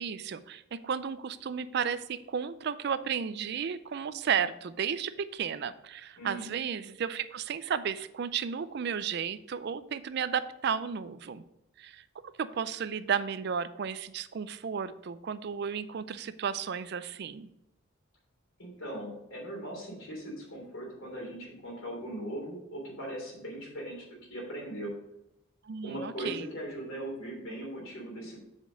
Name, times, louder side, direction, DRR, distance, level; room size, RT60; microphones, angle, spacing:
voice 1, 0.0-11.4 11.8-12.0 12.4-17.5 25.6-26.5, right 7 dB, 50° right, 14 dB, 0.4 m, -33 dB
voice 2, 6.2-6.5 18.6-24.9 25.8-28.4, right 1 dB, 70° left, -1 dB, 3.2 m, -39 dB
7.6 x 5.2 x 4.9 m, 0.86 s
head